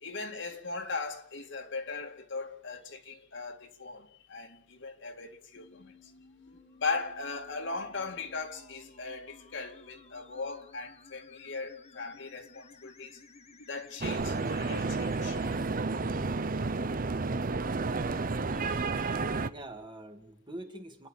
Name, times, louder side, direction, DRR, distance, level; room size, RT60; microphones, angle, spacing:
voice 1, 0.0-5.9 6.5-13.2 13.7-15.4 18.5-19.2, left 4 dB, 65° left, 2.3 m, -39 dB
sound 1, 5.6-15.6, left 4 dB, 35° left, 1.5 m, -56 dB
sound 2, 14.0-19.5, right 3 dB, 45° right, 0.8 m, -31 dB
voice 2, 19.2-21.1, right 1 dB, 25° right, 2.2 m, -45 dB
29.5 x 10.5 x 8.9 m
head